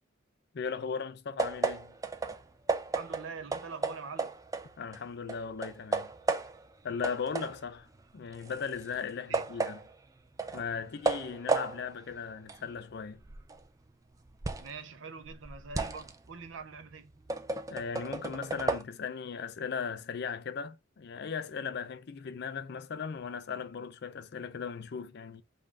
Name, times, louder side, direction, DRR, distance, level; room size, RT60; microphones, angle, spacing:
voice 1, 0.5-1.9 4.8-6.1 6.8-7.9 8.1-9.8 10.5-13.2 17.7-25.4, left 6 dB, 55° left, 0.4 m, -37 dB
sound 1, 1.4-5.0 5.3-6.7 7.0-14.8 15.2-18.8, right 3 dB, 15° right, 0.4 m, -34 dB
voice 2, 2.9-4.3 9.3-9.5 14.6-17.2, right 5 dB, 65° right, 0.6 m, -44 dB
5.3 x 2.5 x 3.3 m
head